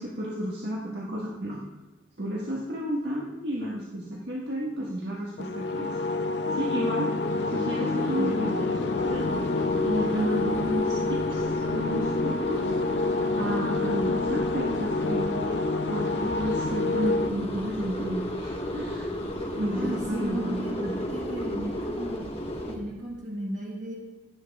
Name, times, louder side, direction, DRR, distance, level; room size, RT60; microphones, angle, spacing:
voice 1, 0.0-1.6 2.2-6.0 6.5-7.1 7.5-9.5 9.8-15.3 15.9-21.0, equal, 65° right, -4 dB, 1.5 m, -32 dB
sound 1, 5.4-17.3, left 3 dB, 70° left, 0.5 m, -28 dB
sound 2, 7.2-22.8, equal, 35° left, 1.2 m, -34 dB
voice 2, 8.2-8.6 19.7-22.3 22.7-23.9, right 1 dB, 40° right, -3 dB, 1.5 m, -35 dB
16.5 x 7.5 x 3.5 m, 1.2 s
head